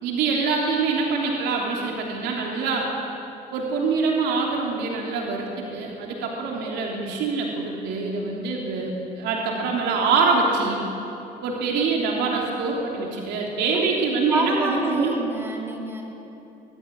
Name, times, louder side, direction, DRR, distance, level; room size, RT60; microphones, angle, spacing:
voice 1, 0.0-2.9 3.5-10.8 11.4-15.1, right 4 dB, 85° right, -1 dB, 3.2 m, -25 dB
voice 2, 14.3-16.0, right 1 dB, 15° right, 0 dB, 3.2 m, -27 dB
21.0 x 14.0 x 9.9 m, 2.9 s
cardioid pair, 110°, 17 cm